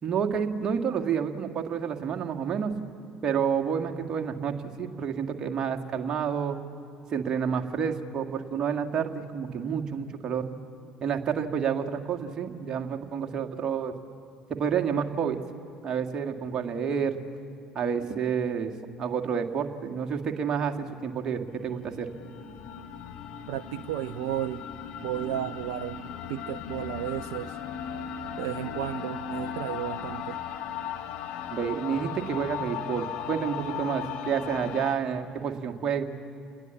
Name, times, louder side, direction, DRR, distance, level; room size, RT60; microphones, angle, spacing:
voice 1, 0.0-2.7 3.2-6.6 7.1-10.4 11.0-13.9 14.5-15.4 15.8-17.2 17.7-18.7 19.0-22.1 31.5-36.0, right 7 dB, 35° right, 3 dB, 2.1 m, -29 dB
sound 1, 21.5-35.0, left 8 dB, 55° left, 1.9 m, -37 dB
voice 2, 23.5-24.6 25.0-27.6 28.4-30.4, right 13 dB, 60° right, 14 dB, 0.5 m, -33 dB
29.0 x 20.5 x 7.3 m, 2.6 s
figure-of-eight pair, 55°, 2 cm